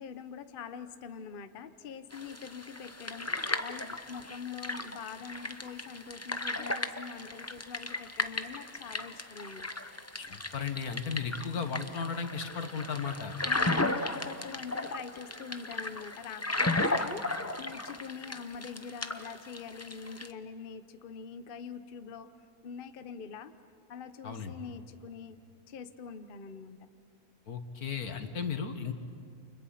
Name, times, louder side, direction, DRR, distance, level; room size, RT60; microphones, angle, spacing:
voice 1, 0.0-9.7 13.4-22.3 22.6-23.5 23.9-25.4 25.7-26.9, left 6 dB, 45° left, 10 dB, 0.9 m, -44 dB
sound 1, 2.1-20.3, left 2 dB, 15° left, 0.5 m, -35 dB
voice 2, 10.2-13.3 24.2-24.5 27.5-28.9, left 6 dB, 75° left, 7 dB, 2.0 m, -35 dB
30.0 x 29.0 x 5.8 m, 2.2 s
omnidirectional pair, 1.6 m